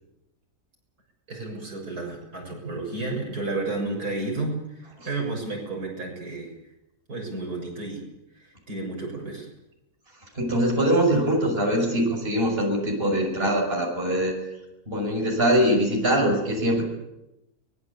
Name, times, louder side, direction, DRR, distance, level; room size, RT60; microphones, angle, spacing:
voice 1, 1.3-6.5 7.1-8.1 8.4-9.5, right 2 dB, 80° right, 0 dB, 7.7 m, -32 dB
voice 2, 10.3-14.4 14.9-16.8, equal, 40° right, 1 dB, 6.3 m, -22 dB
23.5 x 21.5 x 8.4 m, 0.90 s
omnidirectional pair, 1.6 m